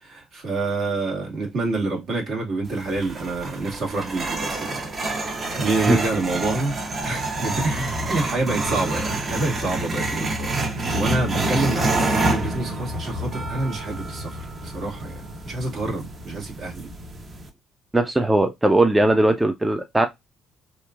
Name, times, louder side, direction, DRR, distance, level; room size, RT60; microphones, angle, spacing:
voice 1, 0.0-4.8 5.1-16.9, right 3 dB, 60° right, 1.4 m, -27 dB
sound 1, 2.7-17.5, right 2 dB, 40° right, 0.9 m, -28 dB
voice 2, 17.9-20.1, right 1 dB, 15° right, 0.5 m, -19 dB
2.9 x 2.5 x 2.3 m
hypercardioid pair, 55°, 0 cm